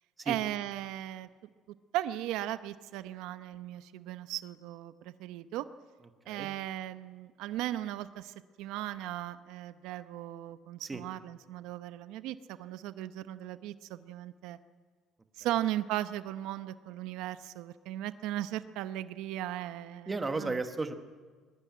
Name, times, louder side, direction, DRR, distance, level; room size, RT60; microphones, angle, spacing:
voice 1, 0.2-1.3 1.9-5.7 6.3-14.6 15.4-20.6, right 13 dB, 70° right, 12 dB, 0.8 m, -37 dB
voice 2, 20.1-20.9, right 3 dB, 15° right, 8 dB, 1.2 m, -34 dB
21.5 x 21.0 x 9.4 m, 1.5 s
cardioid pair, 180°, 0 cm